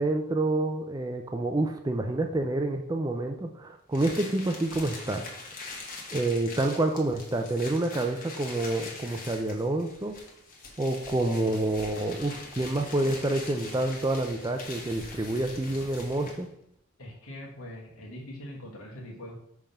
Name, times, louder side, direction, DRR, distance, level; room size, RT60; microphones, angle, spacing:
voice 1, 0.0-5.3 6.1-10.2 10.8-16.5, right 2 dB, 15° right, 4 dB, 0.4 m, -28 dB
sound 1, 3.9-16.5, left 3 dB, 40° left, 1.3 m, -43 dB
voice 2, 17.0-19.4, left 1 dB, 80° left, -4 dB, 1.5 m, -42 dB
5.3 x 3.6 x 5.6 m, 0.71 s
head